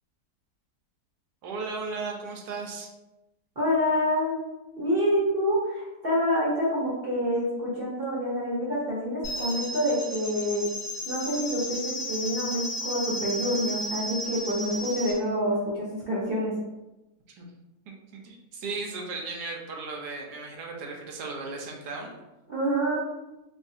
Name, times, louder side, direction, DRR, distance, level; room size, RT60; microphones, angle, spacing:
voice 1, 1.4-2.9 17.4-17.5 17.9-22.2, right 3 dB, 85° right, 0 dB, 1.2 m, -36 dB
voice 2, 3.6-4.3 4.8-10.6 11.1-16.5 22.5-23.0, equal, 40° right, -7 dB, 0.9 m, -27 dB
sound 1, 9.2-15.2, equal, 35° left, 1.1 m, -34 dB
3.2 x 3.0 x 2.7 m, 1.0 s
omnidirectional pair, 1.8 m